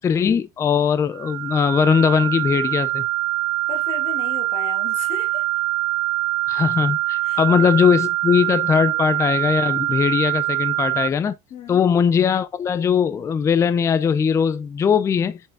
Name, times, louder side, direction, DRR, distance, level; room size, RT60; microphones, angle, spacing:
voice 1, 0.0-3.0 6.5-11.3 11.7-15.4, left 7 dB, 15° left, 0.5 m, -20 dB
sound 1, 1.1-11.1, right 18 dB, 85° right, 0.9 m, -24 dB
voice 2, 3.7-5.4 7.2-7.4 11.5-11.9, left 8 dB, 30° left, 2.2 m, -35 dB
7.0 x 6.7 x 2.2 m
cardioid pair, 170°, 18 cm